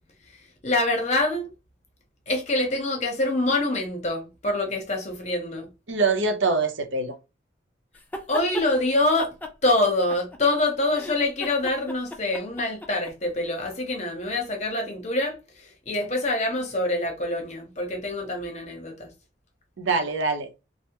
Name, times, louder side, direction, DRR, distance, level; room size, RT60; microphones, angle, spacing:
voice 1, 0.6-1.5 2.3-5.7 8.3-9.3 9.6-19.1, left 2 dB, 35° left, 0.8 m, -25 dB
voice 2, 5.9-7.1 19.8-20.5, right 3 dB, 80° right, 0.7 m, -24 dB
sound 1, 7.9-8.7 9.2-10.6 10.9-13.1, left 1 dB, 10° left, 0.3 m, -37 dB
3.3 x 2.0 x 2.9 m
head